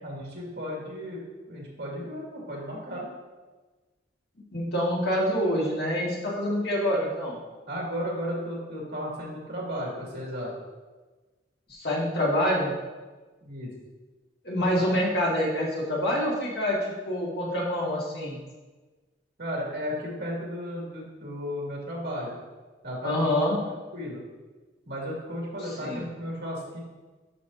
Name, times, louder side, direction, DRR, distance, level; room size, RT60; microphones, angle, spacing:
voice 1, 0.0-3.0 7.7-10.5 13.4-13.7 14.8-14.9 19.4-22.3 22.8-23.4 23.9-24.2 24.9-26.8, equal, 60° right, -3 dB, 2.3 m, -34 dB
voice 2, 4.5-7.4 11.7-12.7 14.4-18.4 23.0-23.6 25.7-26.0, equal, 60° left, -4 dB, 1.9 m, -26 dB
9.7 x 5.8 x 2.8 m, 1.3 s
head